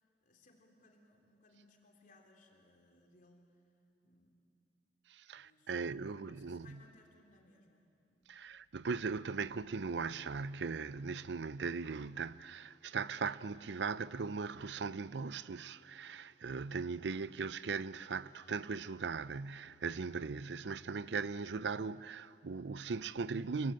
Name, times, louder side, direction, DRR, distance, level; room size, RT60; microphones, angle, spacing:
voice 1, 0.2-3.6 4.0-4.3 5.3-8.3, left 2 dB, 50° left, 3.4 m, -65 dB
voice 2, 5.1-6.8 8.3-23.7, right 5 dB, 75° right, 0.5 m, -39 dB
25.0 x 23.0 x 9.0 m
head